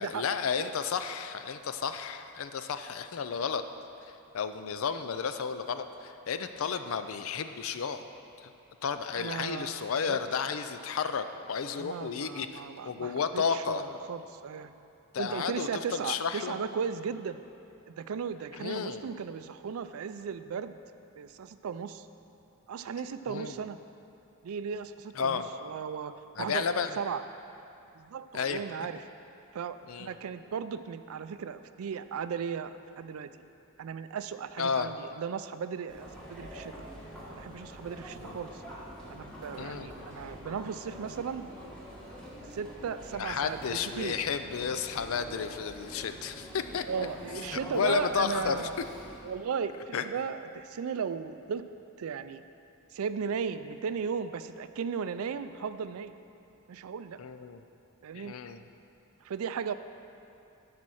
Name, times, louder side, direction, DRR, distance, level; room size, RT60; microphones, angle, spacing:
voice 1, 0.0-3.6 4.3-8.0 8.4-8.5 8.8-13.8 15.1-16.6 18.6-19.1 23.3-23.5 25.2-25.5 26.4-27.0 28.3-28.6 29.9-30.1 34.6-34.9 38.2-38.4 39.6-39.9 43.2-47.1 47.5-48.7 49.9-50.0 57.2-57.6 58.1-58.6, left 6 dB, 70° left, 9 dB, 0.4 m, -32 dB
voice 2, 9.1-10.2 11.7-14.7 15.2-17.4 17.9-20.8 21.1-22.1 22.7-23.8 24.4-26.7 27.0-27.2 27.9-29.0 29.5-33.3 33.8-36.7 37.3-38.6 39.1-41.5 42.5-44.2 46.9-48.7 49.2-51.7 52.0-52.4 52.9-56.1 56.7-57.2 58.0-58.3 59.2-59.7, right 6 dB, 75° right, 12 dB, 0.4 m, -36 dB
Chatter, 35.9-49.2, equal, 5° left, 1.4 m, -45 dB
12.0 x 4.2 x 6.3 m, 2.7 s
head